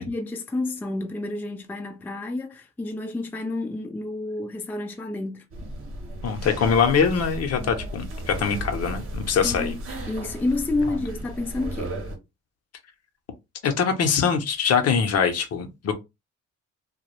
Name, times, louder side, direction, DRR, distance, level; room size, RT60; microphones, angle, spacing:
voice 1, 0.0-5.4 9.4-9.8 10.1-12.0, left 2 dB, 5° left, 0.3 m, -29 dB
sound 1, 5.5-12.2, right 1 dB, 45° right, 0.9 m, -34 dB
voice 2, 6.2-9.7 13.6-15.9, left 6 dB, 55° left, 0.6 m, -23 dB
2.2 x 2.0 x 2.9 m
cardioid pair, 90°, 30 cm